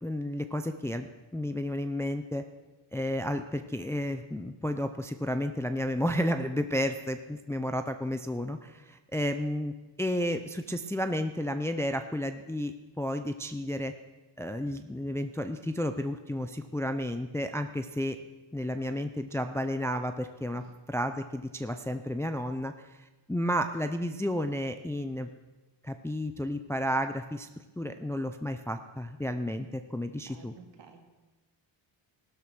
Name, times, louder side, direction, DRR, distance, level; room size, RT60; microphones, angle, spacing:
voice 1, 0.0-2.4 2.9-13.9 14.4-18.2 18.5-23.0 23.3-25.3 25.8-30.5, equal, 5° left, 7 dB, 0.5 m, -32 dB
voice 2, 29.9-31.0, right 6 dB, 65° right, 3 dB, 2.5 m, -54 dB
16.5 x 12.5 x 6.1 m, 1.1 s
wide cardioid pair, 175°, 47 cm